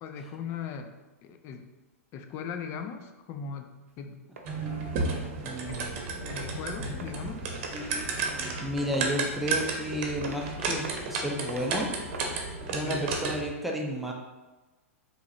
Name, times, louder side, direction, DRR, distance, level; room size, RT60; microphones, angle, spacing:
voice 1, 0.0-0.9 1.2-1.7 2.1-3.7 4.0-4.2 5.1-5.3 5.7-5.8 6.3-7.5 12.7-13.1, left 6 dB, 40° left, 6 dB, 0.5 m, -38 dB
sound 1, 3.9-4.0 4.4-4.5 5.0-5.1 5.7-5.8 6.4-6.5 7.0-7.1 7.6-7.8 8.3-8.6 8.9-9.1 9.6-9.8 10.2-10.4 10.8-11.1 11.5-11.6 12.1-12.3, right 3 dB, 85° right, 0.6 m, -42 dB
sound 2, 4.4-13.5, right 3 dB, 50° right, 0.8 m, -33 dB
voice 2, 5.4-6.0 8.6-11.9 12.7-14.1, equal, ahead, -1 dB, 0.6 m, -32 dB
4.7 x 3.1 x 2.7 m, 1.1 s
hypercardioid pair, 110°, 8 cm